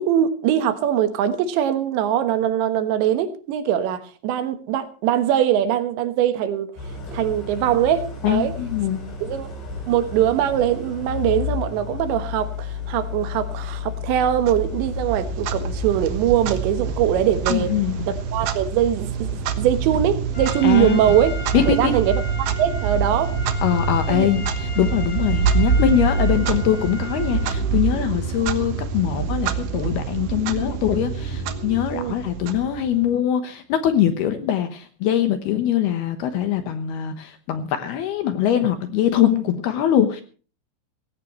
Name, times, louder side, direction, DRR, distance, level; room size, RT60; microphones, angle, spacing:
voice 1, 0.0-6.7 7.1-8.5 9.2-9.5 9.9-17.7 18.3-21.3 21.7-22.2 22.6-23.3 24.1-24.3 31.9-32.2, right 10 dB, 70° right, 10 dB, 3.2 m, -22 dB
Idling, 6.8-22.0, left 5 dB, 55° left, 8.0 m, -33 dB
voice 2, 8.2-9.0 17.5-18.1 20.6-21.2 21.5-22.0 23.6-40.2, left 10 dB, 70° left, 9 dB, 2.5 m, -22 dB
Clock, 14.4-33.2, right 6 dB, 85° right, 1.8 m, -26 dB
Trumpet, 20.3-27.7, left 1 dB, 30° left, 2.7 m, -37 dB
19.0 x 17.0 x 3.1 m, 0.37 s
omnidirectional pair, 5.8 m